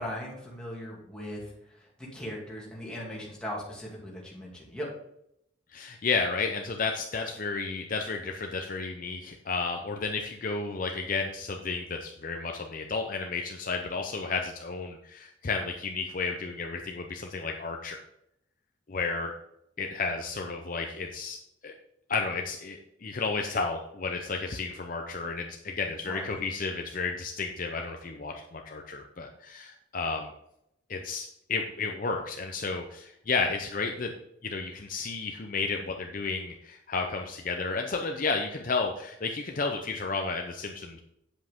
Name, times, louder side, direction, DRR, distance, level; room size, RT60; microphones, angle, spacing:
voice 1, 0.0-4.9 26.1-26.3, equal, 5° left, -4 dB, 2.3 m, -39 dB
voice 2, 5.7-18.0 18.9-19.4 19.8-21.4 21.6-21.7 22.1-30.3 30.9-34.1 34.4-41.0, left 4 dB, 40° left, 3 dB, 0.6 m, -32 dB
8.4 x 7.6 x 3.6 m, 0.79 s
head